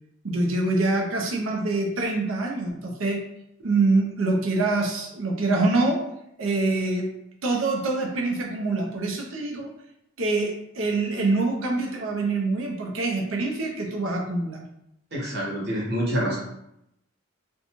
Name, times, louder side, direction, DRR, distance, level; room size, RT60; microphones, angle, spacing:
voice 1, 0.2-3.2 3.6-6.0 6.4-7.1 7.4-9.7 10.2-14.6, right 2 dB, 75° right, 1 dB, 0.5 m, -25 dB
voice 2, 15.1-16.4, equal, 50° right, -4 dB, 0.9 m, -26 dB
2.5 x 2.2 x 2.9 m, 0.80 s
head